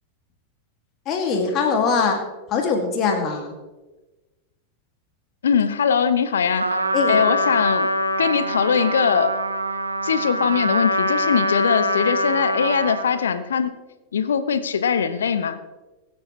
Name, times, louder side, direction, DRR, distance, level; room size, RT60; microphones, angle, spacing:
voice 1, 1.1-2.2 2.5-3.5 6.9-7.2, left 5 dB, 35° left, 3 dB, 2.2 m, -22 dB
voice 2, 5.4-6.8 7.1-7.9 8.2-9.3 10.0-13.8 14.1-15.6, left 7 dB, 65° left, 12 dB, 1.0 m, -21 dB
Trumpet, 6.6-13.2, equal, 80° right, 1.1 m, -24 dB
23.0 x 9.3 x 3.2 m, 1.2 s
figure-of-eight pair, 90°, 0 cm